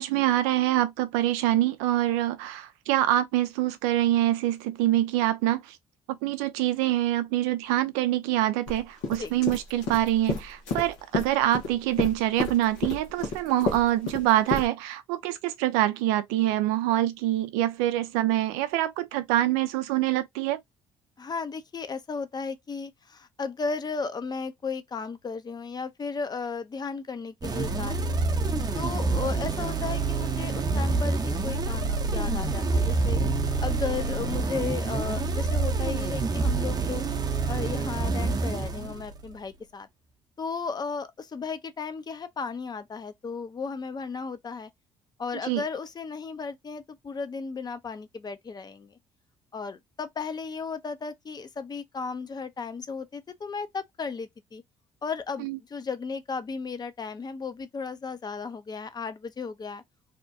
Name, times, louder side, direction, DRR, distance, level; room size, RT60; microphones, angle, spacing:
voice 1, 0.0-5.8 6.1-20.6 45.4-45.6 55.4-55.6, right 14 dB, 85° right, 0.4 m, -25 dB
sound 1, 8.7-8.8 9.0-11.7 12.0-14.7, left 4 dB, 85° left, 0.9 m, -30 dB
voice 2, 21.2-28.2 28.7-33.2 33.6-37.0 37.5-39.9 40.4-44.7 45.2-49.0 49.5-54.6 55.0-59.8, left 5 dB, 35° left, 0.6 m, -35 dB
sound 2, 27.4-39.3, right 3 dB, 35° right, 0.6 m, -27 dB
2.8 x 2.2 x 2.5 m
supercardioid pair, 65°, 12 cm